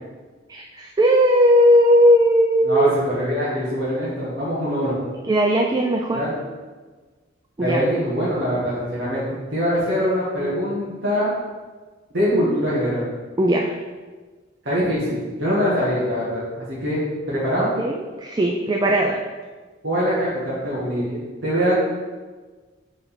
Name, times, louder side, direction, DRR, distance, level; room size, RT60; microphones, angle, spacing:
voice 1, 0.5-2.9 5.3-6.2 7.6-7.8 12.3-12.6 13.4-13.8 17.6-19.2, equal, 20° right, 2 dB, 0.3 m, -18 dB
voice 2, 2.6-5.0 6.1-6.3 7.6-11.3 12.1-13.0 14.6-17.0 17.3-17.7 19.8-21.8, equal, 75° right, -9 dB, 1.6 m, -23 dB
4.8 x 4.0 x 5.2 m, 1.4 s
head